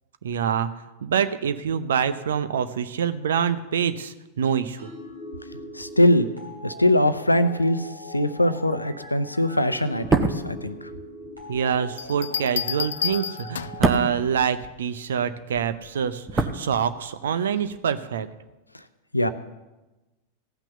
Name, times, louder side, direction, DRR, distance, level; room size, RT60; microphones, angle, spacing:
voice 1, 0.2-0.7 1.0-4.9 11.5-18.3, right 7 dB, 65° right, 12 dB, 0.7 m, -26 dB
sound 1, 4.8-14.2, equal, 85° right, 3.4 m, -41 dB
voice 2, 5.5-6.3 6.6-10.9 19.1-19.3, left 1 dB, 85° left, 12 dB, 0.7 m, -22 dB
sound 2, 9.9-15.2 15.5-17.3 17.6-17.8, right 3 dB, 15° right, 1.0 m, -28 dB
Bell, 12.0-13.9 15.5-15.9, left 9 dB, 65° left, 0.3 m, -30 dB
15.5 x 6.0 x 6.9 m, 1.1 s
figure-of-eight pair, 90°, 0 cm